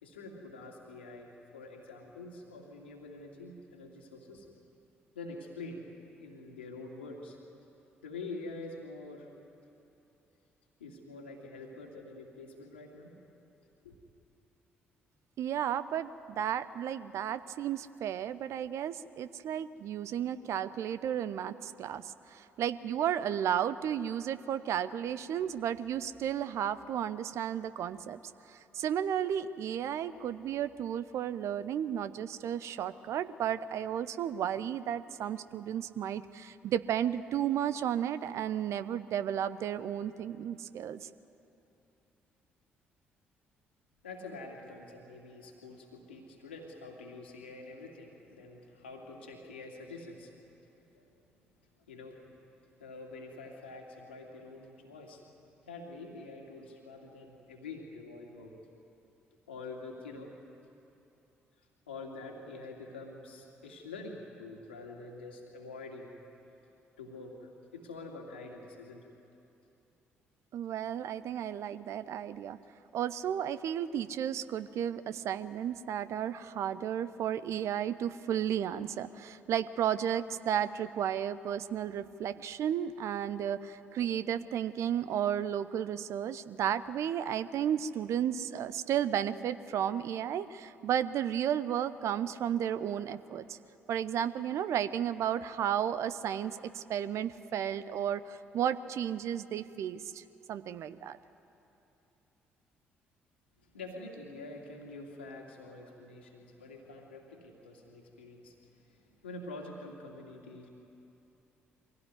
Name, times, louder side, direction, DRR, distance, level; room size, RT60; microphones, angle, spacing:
voice 1, 0.0-4.5 5.1-5.8 6.2-7.4 8.0-9.3 10.8-13.2 13.8-13.9 44.0-51.1 51.9-52.2 52.8-55.2 55.6-58.5 59.5-60.3 61.9-66.1 67.0-69.1 103.7-110.7, left 3 dB, 80° left, 0 dB, 2.5 m, -46 dB
voice 2, 15.4-28.2 28.5-41.1 70.5-72.6 72.9-93.6 93.9-100.2 100.5-101.2, right 9 dB, 55° right, 14 dB, 0.8 m, -33 dB
24.0 x 16.5 x 9.6 m, 2.9 s
figure-of-eight pair, 45°, 6 cm